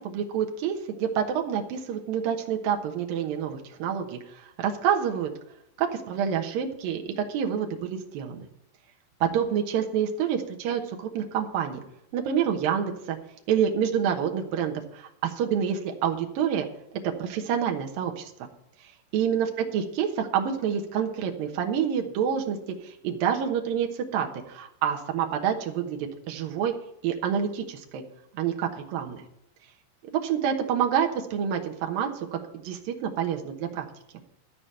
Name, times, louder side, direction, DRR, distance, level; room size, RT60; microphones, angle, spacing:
voice 1, 0.0-5.3 5.8-8.5 9.2-11.8 12.1-13.2 13.5-16.7 17.0-18.5 19.1-22.6 22.8-26.7 27.0-28.0 28.3-29.2 30.2-33.9, right 8 dB, 70° right, 3 dB, 2.3 m, -28 dB
14.0 x 5.0 x 8.9 m, 0.79 s
omnidirectional pair, 5.5 m